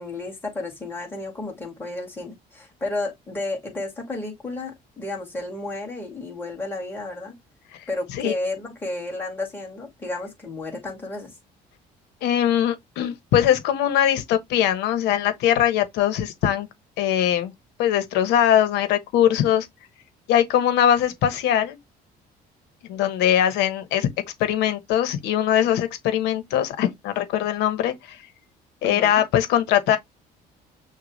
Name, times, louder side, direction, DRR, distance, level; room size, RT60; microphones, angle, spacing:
voice 1, 0.0-7.4 7.9-11.3 28.8-29.2, left 2 dB, 10° left, 2.2 m, -32 dB
voice 2, 12.2-16.7 17.0-17.5 17.8-19.7 20.3-21.8 22.9-24.1 24.4-28.2 28.8-30.0, left 10 dB, 85° left, 1.0 m, -21 dB
6.2 x 2.3 x 3.1 m
cardioid pair, 110°, 17 cm